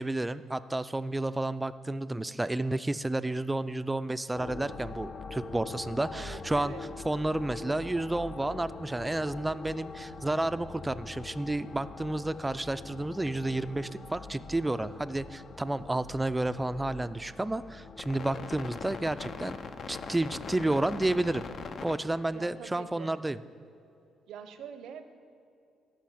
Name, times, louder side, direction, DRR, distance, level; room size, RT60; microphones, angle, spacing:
voice 1, 0.0-6.7 7.1-19.6 19.9-21.4 21.8-23.4, right 2 dB, 15° right, 14 dB, 0.4 m, -31 dB
sound 1, 4.3-22.5, left 4 dB, 55° left, 0.7 m, -43 dB
voice 2, 6.1-6.8 22.3-23.1 24.3-25.0, right 8 dB, 80° right, 10 dB, 0.7 m, -44 dB
14.0 x 5.6 x 7.5 m, 2.6 s
cardioid pair, 90°, 0 cm